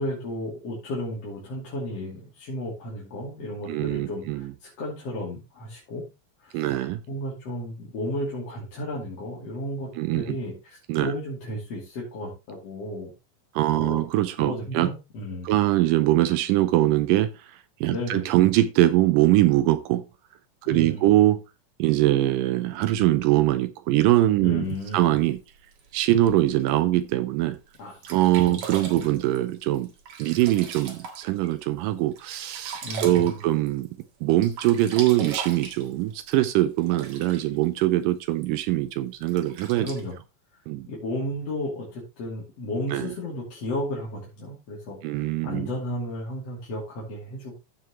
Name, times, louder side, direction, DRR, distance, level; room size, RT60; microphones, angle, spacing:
voice 1, 0.0-6.1 6.4-6.7 7.1-9.9 10.1-13.1 13.7-14.0 14.4-15.5 17.9-18.3 20.7-21.1 24.4-25.0 27.8-27.9 28.5-28.6 28.9-29.1 32.8-33.4 39.8-40.2 40.9-47.6, left 1 dB, 50° left, 3.6 m, -33 dB
voice 2, 3.7-4.5 6.5-7.0 10.0-10.4 10.9-11.1 13.5-14.9 15.4-20.0 20.6-21.4 21.8-24.7 24.9-25.4 25.9-27.6 28.1-29.9 30.2-33.9 34.2-39.9 40.7-40.9 42.9-43.1 45.0-45.7, right 15 dB, 85° right, 2.3 m, -22 dB
Sink (filling or washing), 24.7-26.6 27.3-27.4 27.7-27.8 28.0-31.5 31.9-34.0 34.3-37.7 38.4-38.5 39.2-40.0, right 5 dB, 60° right, 3.0 m, -39 dB
15.0 x 6.2 x 3.0 m
omnidirectional pair, 3.8 m